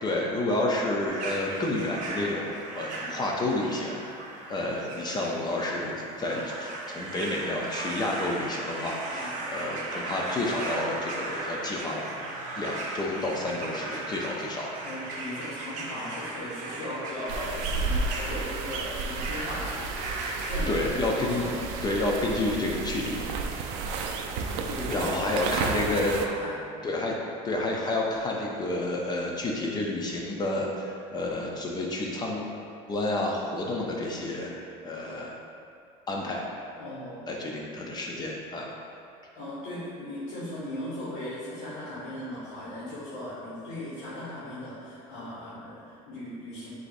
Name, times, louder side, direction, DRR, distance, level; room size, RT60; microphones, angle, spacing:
voice 1, 0.0-4.0 4.5-5.9 6.2-12.2 12.6-14.8 20.7-21.4 21.8-23.2 24.9-26.2 26.8-27.1 27.4-32.4 32.9-34.5 34.8-35.3 36.1-36.4 37.3-38.7, left 2 dB, 25° left, -2 dB, 0.5 m, -30 dB
sound 1, 1.1-20.6, right 2 dB, 45° right, 0.7 m, -37 dB
voice 2, 9.1-9.5 14.8-19.9 20.4-20.8 21.2-21.8 24.6-25.8 26.2-26.5 36.8-37.2 39.3-46.7, left 1 dB, 80° left, -11 dB, 1.5 m, -38 dB
sound 2, 17.3-26.3, right 4 dB, 80° right, 0.4 m, -32 dB
7.6 x 2.7 x 2.6 m, 2.5 s
cardioid pair, 125°, 17 cm